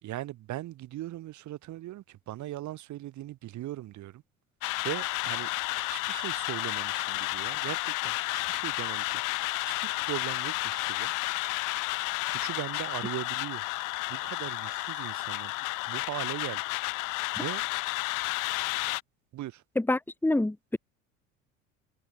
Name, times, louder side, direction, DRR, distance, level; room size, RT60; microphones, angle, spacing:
voice 1, 0.0-4.2 4.8-11.1 12.2-13.6 14.1-15.5 15.9-17.6 19.3-19.6, right 15 dB, 45° right, 4.9 m, -39 dB
sound 1, 4.6-19.0, left 23 dB, 55° left, 2.4 m, -32 dB
voice 2, 19.8-20.8, left 2 dB, 5° left, 1.8 m, -27 dB
figure-of-eight pair, 70°, 39 cm